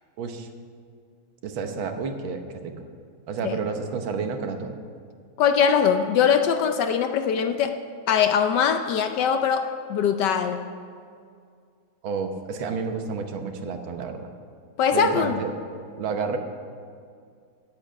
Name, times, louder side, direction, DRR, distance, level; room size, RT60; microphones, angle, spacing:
voice 1, 0.2-0.5 1.4-2.9 3.3-4.8 12.0-14.3 14.9-15.5 16.0-16.4, right 5 dB, 80° right, 6 dB, 1.8 m, -30 dB
voice 2, 5.4-7.8 8.1-10.7 14.8-15.4, left 7 dB, 70° left, 8 dB, 1.1 m, -22 dB
8.9 x 8.6 x 8.1 m, 2.2 s
omnidirectional pair, 2.2 m